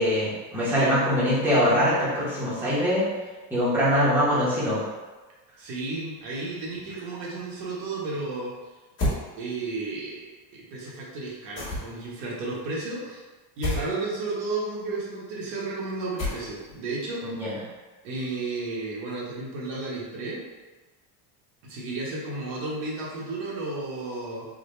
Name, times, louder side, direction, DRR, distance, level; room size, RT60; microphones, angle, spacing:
voice 1, 0.0-3.1 3.5-4.8 17.2-17.6, equal, 5° right, -10 dB, 0.8 m, -23 dB
voice 2, 5.6-8.5 9.4-10.3 10.5-13.2 13.6-17.2 18.0-20.4 21.6-24.5, right 3 dB, 80° right, -5 dB, 1.2 m, -33 dB
sound 1, 9.0-9.2 11.6-12.1 13.6-13.9 16.2-16.7, left 1 dB, 25° left, 1.2 m, -28 dB
3.7 x 2.2 x 3.2 m, 1.3 s
cardioid pair, 160°, 45 cm